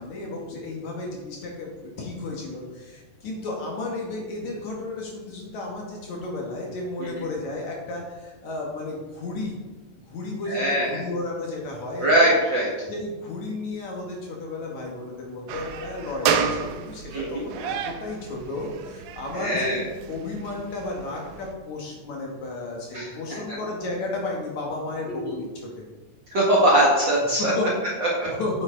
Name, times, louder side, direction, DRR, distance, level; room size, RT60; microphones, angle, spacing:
voice 1, 0.0-9.6 10.1-12.1 12.9-19.8 20.1-25.8 27.4-27.9 28.3-28.6, left 2 dB, 60° left, -1 dB, 2.4 m, -33 dB
voice 2, 10.5-11.0 12.0-12.7 17.1-17.4 19.3-19.8 22.9-23.4 25.1-25.3 26.3-27.5 28.0-28.3, right 1 dB, 45° right, -5 dB, 1.7 m, -22 dB
sound 1, 15.5-21.5, right 7 dB, 85° right, 2.5 m, -31 dB
8.9 x 7.6 x 3.7 m, 1.2 s
omnidirectional pair, 4.1 m